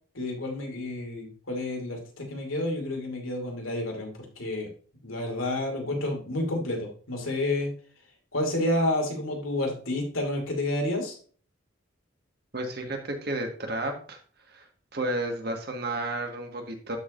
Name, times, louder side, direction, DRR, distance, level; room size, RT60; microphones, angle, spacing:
voice 1, 0.1-4.7 5.0-7.7 8.3-11.2, left 1 dB, 85° left, 1 dB, 2.7 m, -30 dB
voice 2, 12.5-14.2 14.5-14.7 14.9-17.0, right 1 dB, 50° right, 3 dB, 1.5 m, -32 dB
12.5 x 4.8 x 2.5 m, 0.43 s
head